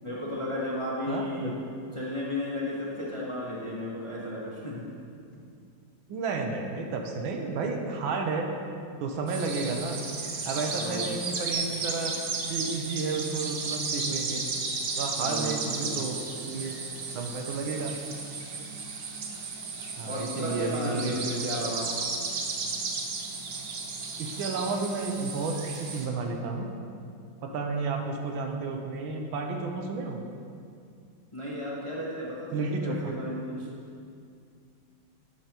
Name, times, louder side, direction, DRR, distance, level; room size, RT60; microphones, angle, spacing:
voice 1, 0.0-1.6 1.9-4.9 10.7-11.2 15.1-16.0 20.0-21.9 31.3-33.7, left 1 dB, 20° left, -5 dB, 1.0 m, -34 dB
voice 2, 1.1-1.5 6.1-8.5 9.0-10.0 10.4-12.1 12.5-14.5 15.0-16.2 16.5-16.7 17.1-17.9 20.0-21.4 24.2-26.7 27.4-30.2 32.5-33.1, right 4 dB, 80° right, 3 dB, 1.6 m, -32 dB
sound 1, 9.3-26.1, right 4 dB, 60° right, 1.1 m, -34 dB
12.0 x 7.9 x 3.0 m, 2.4 s
omnidirectional pair, 2.2 m